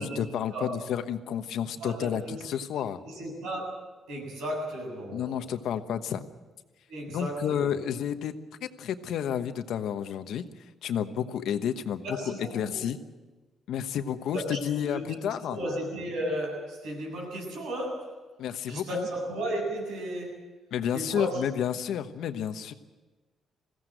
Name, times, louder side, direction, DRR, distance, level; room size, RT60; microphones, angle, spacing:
voice 1, 0.0-3.0 5.1-6.2 7.1-8.3 8.6-10.4 10.8-13.0 13.7-15.6 18.4-19.1 20.7-22.7, left 9 dB, 80° left, 9 dB, 1.1 m, -31 dB
voice 2, 1.8-2.4 3.0-3.7 4.1-5.4 6.9-7.9 12.0-12.7 14.3-14.6 14.9-15.2 15.5-18.2 18.7-20.5 20.9-21.4, right 1 dB, 90° right, 0 dB, 7.8 m, -34 dB
21.5 x 16.0 x 7.9 m, 1.2 s
cardioid pair, 90°, 0 cm